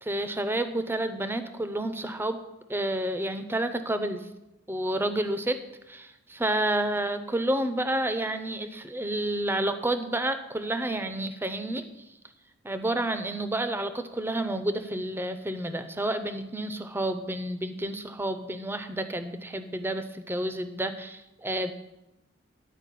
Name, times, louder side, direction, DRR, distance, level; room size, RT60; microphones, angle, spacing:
voice 1, 0.0-2.4 2.7-4.3 4.7-5.6 5.9-11.8 12.6-21.7, right 1 dB, 10° right, 9 dB, 0.5 m, -30 dB
11.0 x 4.8 x 8.3 m, 0.97 s
head